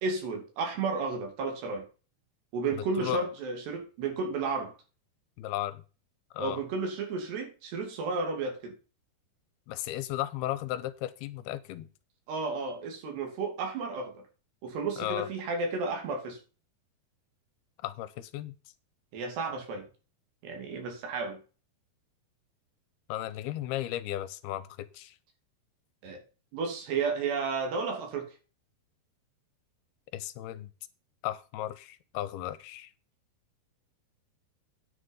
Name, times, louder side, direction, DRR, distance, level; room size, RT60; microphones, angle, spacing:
voice 1, 0.0-1.8 2.5-4.7 6.4-8.7 12.3-14.1 14.6-16.4 19.1-19.9 20.4-21.4 26.0-26.2 26.5-28.3, right 4 dB, 90° right, 4.8 m, -32 dB
voice 2, 2.7-3.2 5.4-5.8 6.3-6.6 9.7-11.9 15.0-15.3 17.8-18.5 23.1-25.2 30.1-30.7 31.2-32.9, left 14 dB, 80° left, 2.6 m, -35 dB
9.7 x 6.5 x 5.4 m
omnidirectional pair, 4.6 m